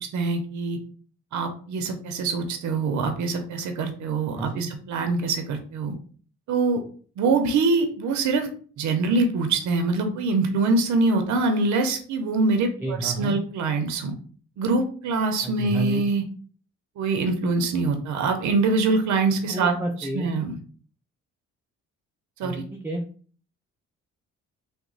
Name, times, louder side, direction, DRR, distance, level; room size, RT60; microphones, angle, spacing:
voice 1, 0.1-0.8 1.3-5.9 6.5-6.8 7.2-8.5 8.8-14.1 14.6-16.2 17.0-20.6 22.4-22.6, right 3 dB, 70° right, 6 dB, 0.6 m, -24 dB
voice 2, 4.4-4.7 12.8-13.4 15.4-16.0 19.5-20.3 22.4-23.0, right 1 dB, 5° right, 1 dB, 0.4 m, -30 dB
2.8 x 2.1 x 3.9 m, 0.43 s
cardioid pair, 90°, 30 cm